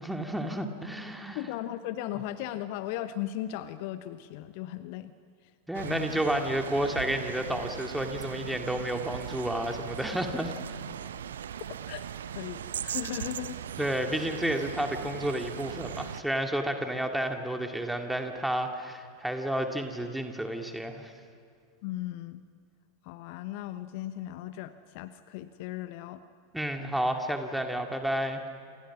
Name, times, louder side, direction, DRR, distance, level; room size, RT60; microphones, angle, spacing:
voice 1, 0.0-1.5 5.7-10.5 13.8-21.1 26.5-28.4, right 1 dB, 5° right, 4 dB, 2.5 m, -31 dB
voice 2, 1.3-5.1 5.4-5.5 5.8-6.1 11.9-13.6 21.8-22.4 23.0-26.2, left 13 dB, 45° left, 12 dB, 0.9 m, -37 dB
sound 1, 5.7-16.2, right 9 dB, 65° right, 0.9 m, -39 dB
29.0 x 27.5 x 6.2 m, 2.3 s
figure-of-eight pair, 90°, 0 cm